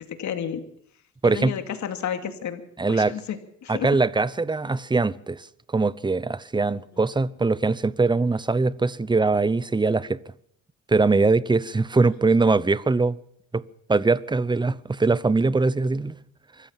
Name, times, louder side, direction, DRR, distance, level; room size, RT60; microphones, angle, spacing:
voice 1, 0.1-0.6 1.2-2.6 2.9-4.0 12.2-12.3, left 8 dB, 70° left, 2.7 m, -31 dB
voice 2, 1.2-1.6 2.8-3.1 3.7-5.5 5.7-10.2 10.9-13.2 13.5-13.6 13.9-16.2, right 3 dB, 15° right, 0.8 m, -22 dB
24.5 x 14.5 x 7.5 m
cardioid pair, 90°, 30 cm